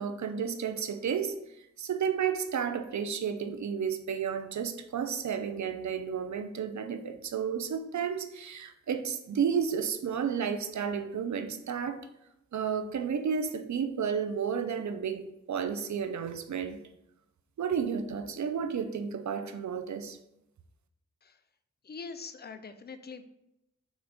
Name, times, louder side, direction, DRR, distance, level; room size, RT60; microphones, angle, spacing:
voice 1, 0.0-1.3 1.8-12.0 12.5-15.2 15.5-16.8 17.6-20.2, right 7 dB, 65° right, 9 dB, 0.5 m, -32 dB
voice 2, 21.8-23.2, left 5 dB, 35° left, 10 dB, 0.4 m, -43 dB
6.2 x 2.4 x 3.5 m, 0.86 s
wide cardioid pair, 65°, 31 cm